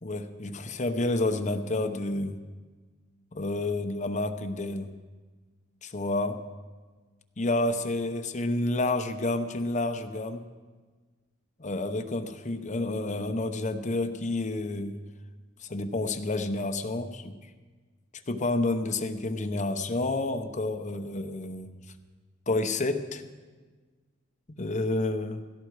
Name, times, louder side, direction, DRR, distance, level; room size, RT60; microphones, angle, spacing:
voice 1, 0.0-2.4 3.3-4.9 5.8-6.4 7.4-10.5 11.6-15.0 15.6-17.4 18.3-21.7 22.5-23.2 24.6-25.4, left 2 dB, 35° left, 7 dB, 0.8 m, -29 dB
16.5 x 13.0 x 4.8 m, 1.4 s
head